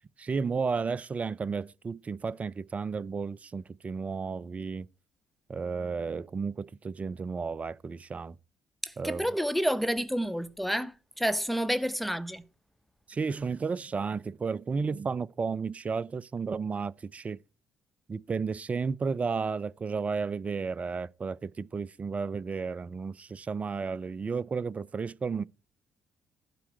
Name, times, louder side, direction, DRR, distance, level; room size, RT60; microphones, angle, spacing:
voice 1, 0.2-4.9 5.5-8.4 9.0-9.3 13.1-17.4 18.1-25.4, right 5 dB, 30° right, 0.4 m, -33 dB
voice 2, 8.8-12.4, equal, ahead, 0.7 m, -29 dB
12.0 x 4.7 x 7.6 m
figure-of-eight pair, 45°, 4 cm